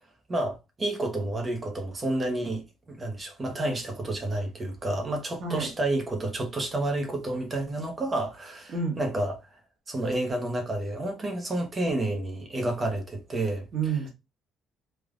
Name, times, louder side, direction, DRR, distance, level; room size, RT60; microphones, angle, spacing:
voice 1, 0.3-9.4 9.9-14.0, right 1 dB, 25° right, 0.9 m, -30 dB
voice 2, 13.7-14.1, right 5 dB, 50° right, 1.2 m, -28 dB
3.3 x 2.5 x 2.4 m
cardioid pair, 130°, 0 cm